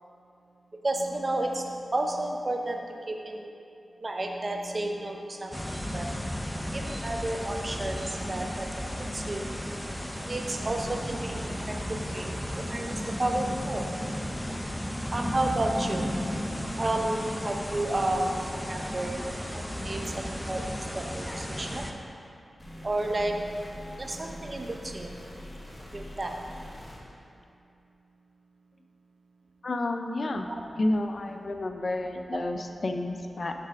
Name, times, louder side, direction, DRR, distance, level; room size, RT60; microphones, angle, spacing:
voice 1, 0.8-3.5 4.0-6.1 6.7-8.9 9.1-9.5 10.3-11.8 12.1-13.9 15.1-16.2 16.8-19.2 19.5-20.6 20.9-22.0 22.8-23.6 24.0-25.2 25.9-26.4 31.3-31.4 32.3-32.4 32.8-33.0 33.4-33.5, right 1 dB, 40° right, 2 dB, 0.6 m, -32 dB
sound 1, 5.5-21.9, equal, 5° left, 0.5 m, -34 dB
sound 2, 22.6-27.0, equal, 25° left, 1.3 m, -44 dB
voice 2, 29.6-30.5 30.8-33.5, left 2 dB, 60° left, 5 dB, 0.4 m, -30 dB
6.7 x 3.3 x 4.7 m, 2.5 s
cardioid pair, 45°, 0 cm